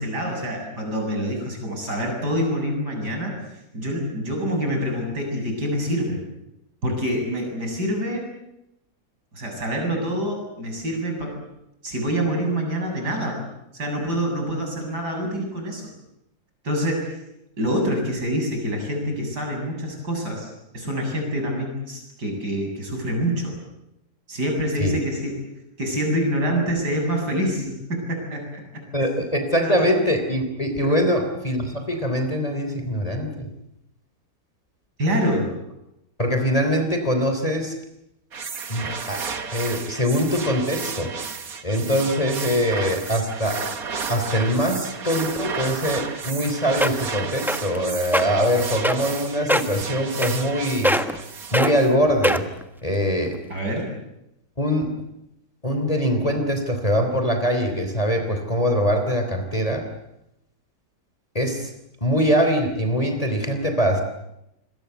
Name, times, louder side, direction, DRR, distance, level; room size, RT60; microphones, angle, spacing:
voice 1, 0.0-3.3 3.7-6.2 6.8-8.3 9.3-11.4 11.8-13.4 13.7-15.9 16.6-17.2 17.6-23.5 24.3-25.4 25.8-28.6 29.6-29.7 30.9-31.0 35.0-35.5 53.5-53.9, equal, 75° right, 2 dB, 8.4 m, -26 dB
voice 2, 28.9-33.5 36.2-37.7 38.7-39.2 39.5-41.1 41.6-43.6 44.1-51.0 51.5-52.4 52.8-53.4 54.6-54.9 55.6-59.8 61.3-61.7 62.0-64.0, equal, 20° left, 5 dB, 3.4 m, -23 dB
sound 1, 38.3-51.9, right 5 dB, 60° right, 2.1 m, -33 dB
sound 2, 46.4-46.5 46.8-47.1 47.5-47.8 48.1-48.2 48.8-49.2 49.5-49.8 50.2-50.6 50.8-51.2 51.5-51.7 52.2-52.6 53.2-53.3, equal, ahead, 1.1 m, -21 dB
27.0 x 22.5 x 8.1 m, 0.84 s
omnidirectional pair, 1.8 m